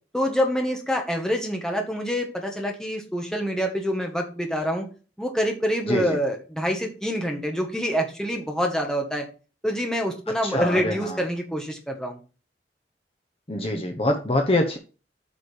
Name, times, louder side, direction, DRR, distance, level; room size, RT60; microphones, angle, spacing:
voice 1, 0.1-4.9 5.2-9.3 9.6-12.2, equal, 5° left, 2 dB, 1.6 m, -26 dB
voice 2, 10.4-11.2 13.5-14.8, left 1 dB, 30° left, 4 dB, 1.0 m, -24 dB
8.4 x 5.2 x 5.1 m, 0.35 s
head